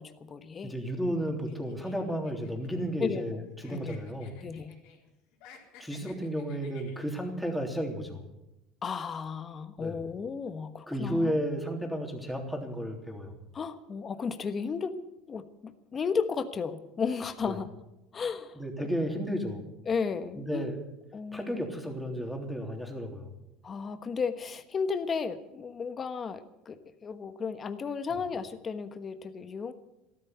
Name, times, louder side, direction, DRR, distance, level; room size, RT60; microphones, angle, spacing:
voice 1, 0.0-0.7 3.0-3.4 3.7-4.0 4.4-4.7 6.0-6.1 8.8-11.4 13.5-14.9 15.3-17.7 18.1-18.9 19.9-20.7 21.1-21.6 23.6-29.7, left 5 dB, 30° left, 10 dB, 1.3 m, -34 dB
voice 2, 0.6-4.4 5.8-8.2 9.8-10.0 10.9-13.3 17.4-17.6 18.5-19.6 20.4-20.8 21.3-23.3, equal, ahead, 1 dB, 3.3 m, -33 dB
sound 1, 1.5-3.3 3.6-5.0 5.3-7.3, left 7 dB, 70° left, 4.1 m, -55 dB
13.5 x 13.0 x 8.2 m, 0.92 s
supercardioid pair, 110°, 0 cm